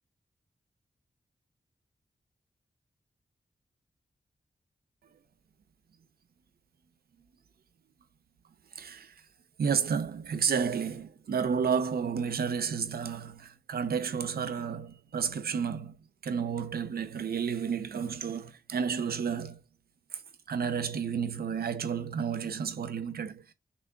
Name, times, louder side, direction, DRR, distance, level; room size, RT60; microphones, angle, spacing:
voice 1, 8.7-9.2 9.6-16.0 16.2-19.6 20.1-20.2 20.5-23.5, right 6 dB, 90° right, 0.7 m, -31 dB
6.1 x 2.3 x 3.6 m
wide cardioid pair, 110°, 15 cm